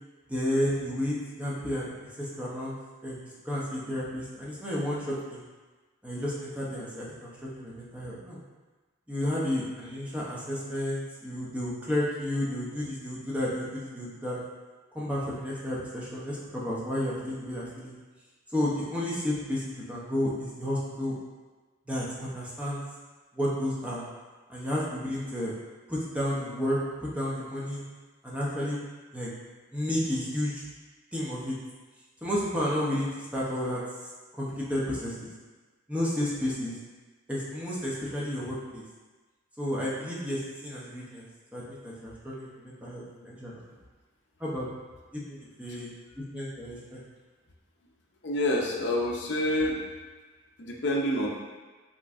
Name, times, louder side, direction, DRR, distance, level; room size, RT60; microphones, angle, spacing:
voice 1, 0.3-1.9 2.2-2.7 3.0-5.4 6.0-8.4 9.1-14.4 14.9-18.0 18.5-21.2 21.9-22.8 23.3-24.0 24.5-25.5 25.9-27.8 28.2-28.8 29.1-29.3 29.7-30.6 31.1-31.6 32.2-33.8 34.4-35.3 35.9-36.8 37.3-38.8 39.6-41.2 41.5-43.6 44.4-44.7 45.1-45.9 46.2-47.0, left 1 dB, 5° right, -7 dB, 0.8 m, -32 dB
voice 2, 48.2-49.8 50.6-51.3, left 1 dB, 60° left, -2 dB, 0.6 m, -27 dB
5.8 x 3.1 x 2.5 m, 1.3 s
head